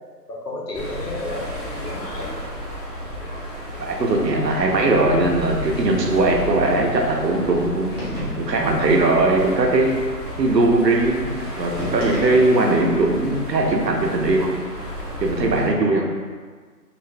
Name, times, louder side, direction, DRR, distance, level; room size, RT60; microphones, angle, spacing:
voice 1, 0.3-2.3 4.5-4.6, left 2 dB, 70° left, -2 dB, 0.8 m, -32 dB
sound 1, 0.7-15.7, equal, ahead, 0.8 m, -32 dB
voice 2, 3.8-8.0 8.4-10.0 10.4-14.5 15.2-16.0, right 2 dB, 80° right, 1 dB, 0.7 m, -19 dB
sound 2, 8.0-8.7 11.8-12.8, equal, 35° left, 0.8 m, -32 dB
2.5 x 2.4 x 3.1 m, 1.6 s
figure-of-eight pair, 175°, 50 cm